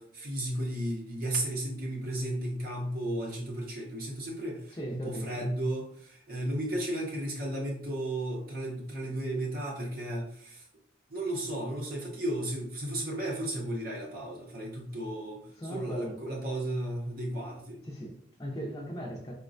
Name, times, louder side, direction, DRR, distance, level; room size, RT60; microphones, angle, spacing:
voice 1, 0.0-10.7 11.1-15.4 15.7-17.8, right 1 dB, 50° right, -2 dB, 0.6 m, -34 dB
voice 2, 4.7-5.5 15.5-16.2 17.8-19.3, equal, 20° left, -3 dB, 0.4 m, -38 dB
3.9 x 2.1 x 2.5 m, 0.62 s
head